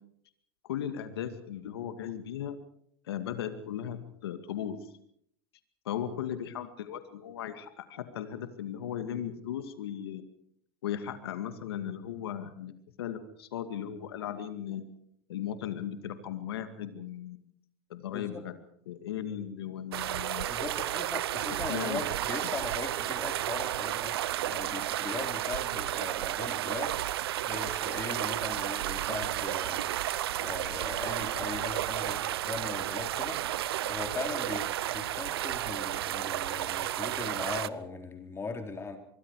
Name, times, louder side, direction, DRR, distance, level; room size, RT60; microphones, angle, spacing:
voice 1, 0.6-2.6 3.0-4.9 5.9-10.3 10.8-12.7 13.0-14.8 15.3-17.5 17.9-18.5 18.9-20.5 21.7-22.0 22.4-22.5, left 10 dB, 90° left, 9 dB, 2.2 m, -37 dB
voice 2, 18.1-18.4 20.5-24.2 24.4-33.4 33.8-39.0, left 4 dB, 20° left, 4 dB, 4.1 m, -39 dB
sound 1, 19.9-37.7, right 13 dB, 85° right, 0.8 m, -32 dB
25.5 x 23.0 x 4.9 m, 0.70 s
supercardioid pair, 110°, 13 cm